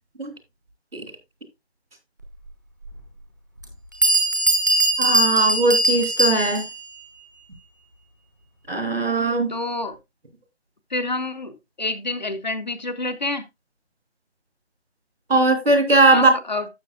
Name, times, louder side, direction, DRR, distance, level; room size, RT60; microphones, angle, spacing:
Bell, 2.8-2.9 3.6-3.7 4.0-6.8, right 1 dB, 15° right, 0.9 m, -20 dB
voice 1, 5.0-6.6 8.7-9.5 15.3-16.3, right 2 dB, 65° right, 3.0 m, -19 dB
voice 2, 9.5-10.0 10.9-13.4 16.1-16.7, left 2 dB, 40° left, 0.9 m, -28 dB
12.0 x 7.6 x 2.4 m
figure-of-eight pair, 175°, 33 cm